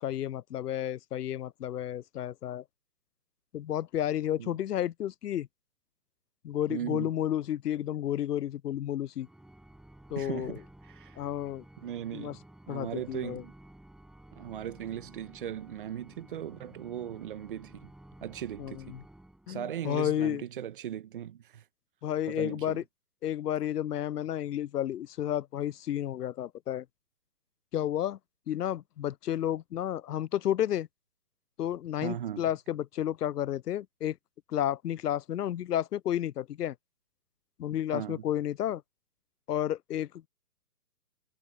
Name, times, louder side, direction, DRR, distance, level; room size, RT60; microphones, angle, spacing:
voice 1, 0.0-2.6 3.5-5.5 6.4-9.3 10.1-10.6 11.2-11.6 12.1-12.4 12.7-13.4 18.6-19.0 19.5-20.4 22.0-22.8 23.2-26.9 27.7-28.2 28.5-30.9 31.6-34.2 34.5-36.8 37.6-38.8 39.5-40.3, left 11 dB, 85° left, 0.5 m, -31 dB
voice 2, 6.7-7.1 10.1-10.6 10.9-11.2 11.8-12.4 12.7-13.5 14.3-17.9 18.2-19.0 19.5-21.6 22.3-22.8 32.0-32.5 37.9-38.2, right 10 dB, 35° right, 1.3 m, -38 dB
Organ, 9.2-20.0, right 1 dB, ahead, 7.7 m, -54 dB
hypercardioid pair, 155°, 46 cm